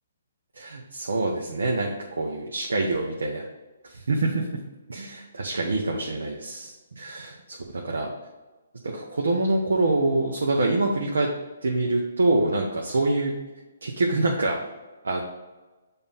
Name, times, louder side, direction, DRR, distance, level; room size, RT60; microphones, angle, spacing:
voice 1, 0.6-3.4 3.8-4.6 4.9-8.1 8.9-11.3 11.6-13.4 13.8-14.6 15.0-15.2, right 2 dB, 85° right, 0 dB, 0.8 m, -25 dB
6.9 x 2.7 x 5.5 m, 1.2 s
hypercardioid pair, 145°, 0 cm